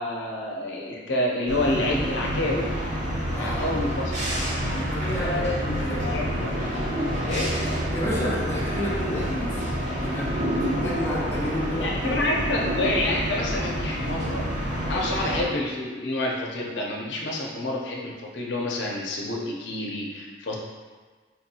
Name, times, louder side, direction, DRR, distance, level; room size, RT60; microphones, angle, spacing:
voice 1, 0.0-2.7 3.3-4.2 5.2-5.6 6.1-6.5 7.3-7.5 11.8-14.4 14.9-20.6, left 1 dB, 85° left, -2 dB, 0.6 m, -28 dB
sound 1, 1.5-15.4, equal, 45° right, 0.8 m, -28 dB
voice 2, 3.3-4.0 4.7-6.2 7.9-9.8 10.0-10.5 10.8-12.2, equal, 15° left, -7 dB, 0.7 m, -31 dB
4.5 x 2.6 x 2.7 m, 1.4 s
head